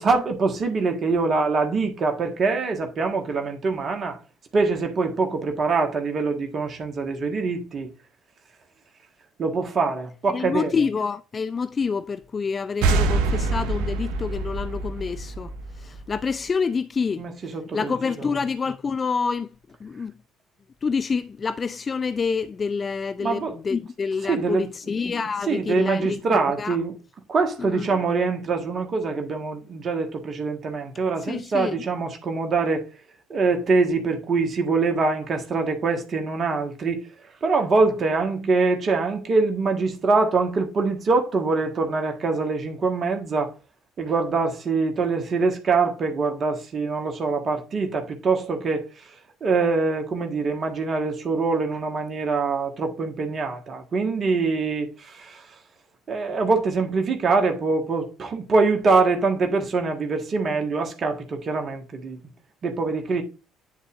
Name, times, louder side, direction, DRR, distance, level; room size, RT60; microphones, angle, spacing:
voice 1, 0.0-4.2 4.5-7.9 9.4-10.7 17.2-17.9 23.2-23.5 24.3-24.7 25.1-25.2 25.5-26.9 27.3-32.8 33.3-37.0 37.4-43.5 44.0-48.8 49.4-55.4 56.1-62.2 62.6-63.2, right 4 dB, 45° right, 1.5 m, -24 dB
voice 2, 10.3-15.5 15.8-19.5 19.8-20.1 20.8-26.8 27.6-28.0 31.3-31.8, left 5 dB, 35° left, 0.4 m, -27 dB
sound 1, 12.8-16.3, right 3 dB, 75° right, 0.8 m, -25 dB
10.0 x 4.1 x 2.5 m
hypercardioid pair, 55°, 0 cm